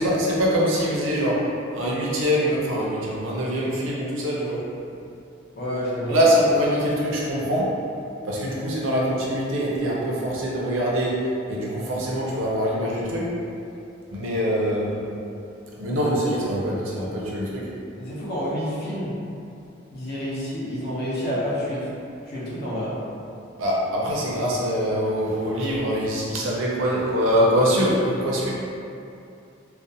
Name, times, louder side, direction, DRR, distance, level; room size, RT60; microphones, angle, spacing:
voice 1, 0.0-4.7 6.1-7.8 8.2-13.3 14.1-15.1 15.8-17.7 23.6-28.5, equal, 90° right, -4 dB, 0.6 m, -23 dB
voice 2, 5.5-6.2 18.0-19.2 19.9-21.9 22.3-23.0, equal, 55° left, -7 dB, 0.6 m, -29 dB
2.4 x 2.1 x 2.6 m, 2.6 s
head